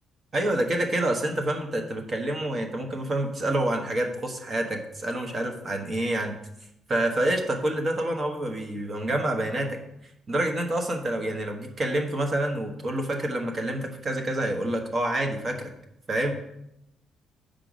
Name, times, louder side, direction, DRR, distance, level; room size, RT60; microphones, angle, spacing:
voice 1, 0.3-6.3 6.9-9.8 10.3-15.7 16.1-16.4, right 1 dB, 30° right, 3 dB, 1.1 m, -27 dB
7.7 x 5.1 x 5.0 m, 0.82 s
cardioid pair, 140°, 0 cm